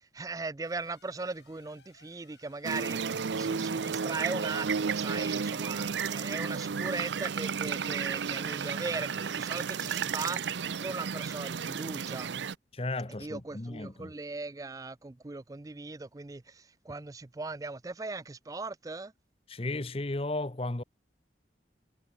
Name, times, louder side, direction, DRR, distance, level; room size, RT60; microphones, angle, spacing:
voice 1, 0.1-12.3 13.2-19.1, right 3 dB, 20° right, 0.4 m, -39 dB
sound 1, 0.6-5.1, left 5 dB, 75° left, 3.3 m, -63 dB
sound 2, 2.6-12.6, right 6 dB, 85° right, 0.6 m, -33 dB
voice 2, 12.7-14.1 19.5-20.8, left 2 dB, 30° left, 1.0 m, -34 dB
head